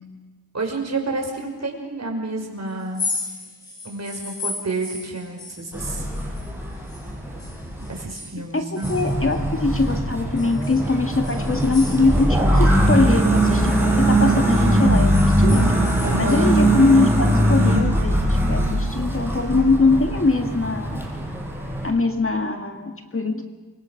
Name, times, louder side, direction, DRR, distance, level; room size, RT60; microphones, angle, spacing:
voice 1, 0.5-3.0 3.8-6.1 7.9-9.0 16.0-16.5, right 3 dB, 40° right, 2 dB, 5.6 m, -29 dB
sound 1, 2.8-7.1 7.4-9.9 10.4-12.7 13.0-16.5, left 3 dB, 50° left, 5.2 m, -36 dB
sound 2, 5.7-8.0 8.8-21.9, right 1 dB, 5° right, 6.1 m, -21 dB
voice 2, 8.5-15.7 16.2-21.0 21.8-23.4, left 3 dB, 30° left, 5 dB, 2.0 m, -22 dB
28.0 x 24.5 x 6.6 m, 1.3 s
wide cardioid pair, 95°, 42 cm